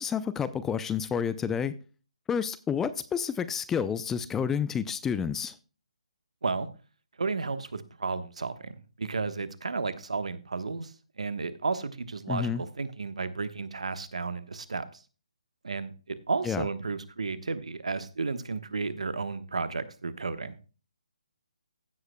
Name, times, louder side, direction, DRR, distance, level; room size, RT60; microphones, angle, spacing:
voice 1, 0.0-1.7 2.3-5.5 12.3-12.6 16.5-16.6, left 7 dB, 10° left, 0.4 m, -29 dB
voice 2, 7.2-15.0 15.6-20.6, right 4 dB, 70° right, 1.2 m, -33 dB
15.5 x 7.9 x 2.2 m
figure-of-eight pair, 145°, 4 cm